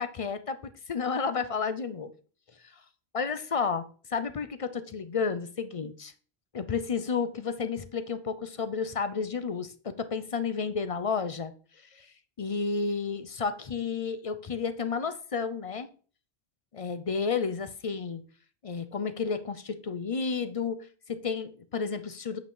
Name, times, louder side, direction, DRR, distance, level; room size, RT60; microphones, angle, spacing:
voice 1, 0.0-0.6 0.9-2.1 3.1-6.1 6.5-11.5 12.0-12.1 12.4-15.9 16.7-18.2 18.6-22.4, left 5 dB, 40° left, 0.5 m, -31 dB
8.5 x 4.9 x 3.7 m
omnidirectional pair, 1.2 m